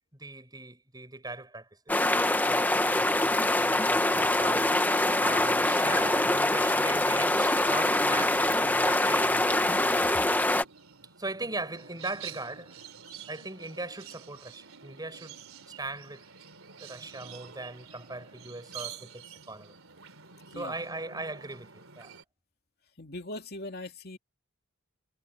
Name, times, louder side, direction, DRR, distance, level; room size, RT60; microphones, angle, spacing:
voice 1, 0.1-4.7 5.2-9.6 9.9-10.0 11.2-12.8 13.3-15.3 15.8-16.2 16.8-19.7 20.5-22.1, right 2 dB, 20° right, 6.0 m, -39 dB
sound 1, 1.9-10.6, left 1 dB, 10° left, 1.1 m, -24 dB
sound 2, 5.6-22.2, right 8 dB, 70° right, 3.4 m, -49 dB
voice 2, 23.0-24.2, left 2 dB, 45° left, 2.8 m, -40 dB
head